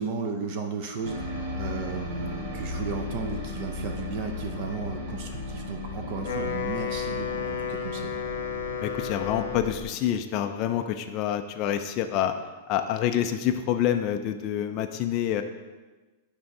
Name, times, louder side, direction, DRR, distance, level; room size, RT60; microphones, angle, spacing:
voice 1, 0.0-8.2, right 5 dB, 40° right, 4 dB, 0.5 m, -34 dB
sound 1, 1.0-9.8, left 2 dB, 55° right, 1.4 m, -36 dB
Wind instrument woodwind instrument, 6.1-10.0, left 7 dB, 85° left, 0.6 m, -32 dB
voice 2, 8.8-12.3 12.7-15.4, left 10 dB, 30° left, 6 dB, 0.3 m, -27 dB
6.5 x 3.4 x 4.8 m, 1.2 s
supercardioid pair, 170°, 0 cm